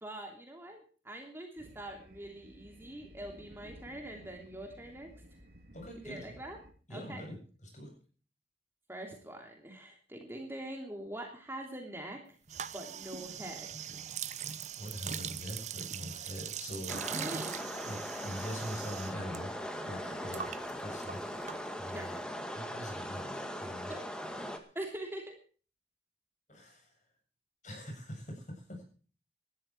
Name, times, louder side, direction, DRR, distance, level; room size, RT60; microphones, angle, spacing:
voice 1, 0.0-5.1 6.0-6.6 6.9-7.2 8.9-12.2 12.7-13.9 17.1-17.6 21.9-22.1 23.9-24.0 24.7-25.4, right 1 dB, 15° right, 3 dB, 3.0 m, -43 dB
sound 1, 1.6-6.7, equal, 60° right, 3.4 m, -55 dB
voice 2, 5.7-6.4 6.9-7.9 14.8-17.2 17.8-19.5 19.8-21.2 21.8-22.1 22.6-24.0 24.5-24.7 26.5-26.9 27.6-28.8, equal, 45° left, 3 dB, 7.6 m, -43 dB
sound 2, 12.5-19.4 19.6-22.0, right 8 dB, 40° right, 0.9 m, -41 dB
sound 3, 16.9-24.6, equal, 5° left, 2.0 m, -40 dB
18.0 x 13.0 x 4.6 m, 0.40 s
head